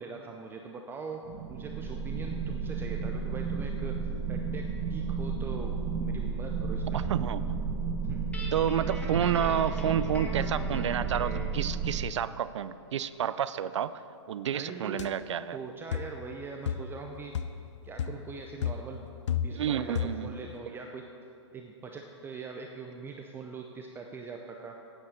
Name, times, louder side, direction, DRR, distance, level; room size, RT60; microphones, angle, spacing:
voice 1, 0.0-7.0 8.0-8.3 14.5-15.2 15.5-17.4 17.8-19.1 19.4-21.1 21.5-24.8, right 4 dB, 15° right, 3 dB, 0.6 m, -42 dB
sound 1, 1.2-12.1, right 5 dB, 35° right, 1.1 m, -32 dB
voice 2, 6.9-7.4 8.5-14.0 14.3-15.6 19.5-20.4, right 9 dB, 70° right, 15 dB, 0.4 m, -30 dB
Guitar, 8.3-11.6, left 1 dB, 10° left, 1.3 m, -42 dB
sound 2, 15.0-15.1 15.9-16.2 16.7-17.0 17.3-17.7 18.0-18.3 18.6-19.7 20.0-20.3, left 8 dB, 70° left, 0.6 m, -33 dB
9.1 x 8.7 x 7.6 m, 2.7 s
hypercardioid pair, 130°, 16 cm